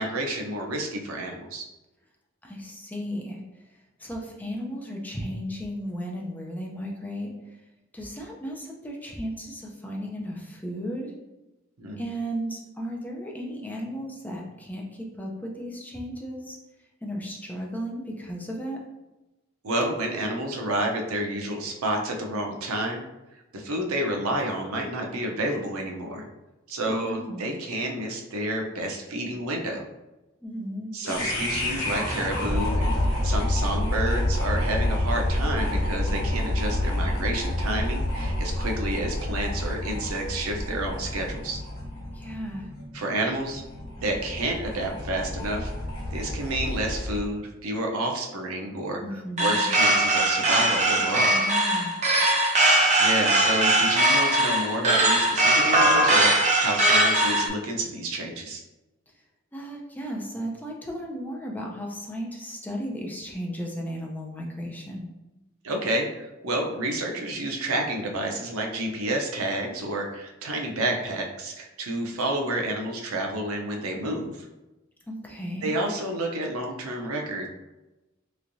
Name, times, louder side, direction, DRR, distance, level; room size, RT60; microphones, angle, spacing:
voice 1, 0.0-1.7 11.8-12.0 19.6-23.0 23.5-26.3 26.7-29.8 30.9-41.6 42.9-43.6 44.0-45.7 46.1-49.0 49.4-51.4 53.0-58.6 65.6-74.5 75.6-77.5, right 1 dB, 80° right, 2 dB, 0.6 m, -29 dB
voice 2, 2.4-3.4 4.0-7.3 7.9-11.1 12.0-16.6 17.0-18.8 26.8-27.6 30.4-30.9 42.1-42.7 49.0-49.7 51.2-52.0 59.5-65.1 75.1-75.7, equal, 10° left, -1 dB, 0.5 m, -35 dB
sound 1, 31.0-47.3, left 1 dB, 65° left, 1.2 m, -28 dB
sound 2, 49.4-57.5, right 1 dB, 35° right, 0.6 m, -21 dB
3.4 x 3.1 x 2.6 m, 1.0 s
head